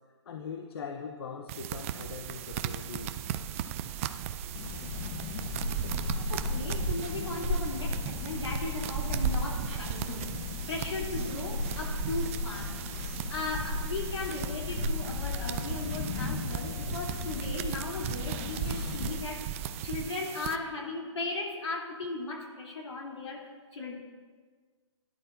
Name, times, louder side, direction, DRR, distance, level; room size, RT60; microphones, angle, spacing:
voice 1, 0.3-3.2 18.5-19.0, left 6 dB, 55° left, 4 dB, 0.9 m, -41 dB
sound 1, 1.5-20.6, right 10 dB, 25° right, 0.4 m, -37 dB
sound 2, 4.5-19.2, left 3 dB, 30° left, 1.0 m, -35 dB
voice 2, 5.8-10.3 10.7-19.5 19.8-23.9, left 3 dB, 75° left, -2 dB, 3.5 m, -37 dB
17.0 x 11.0 x 2.7 m, 1.5 s
hypercardioid pair, 150°, 16 cm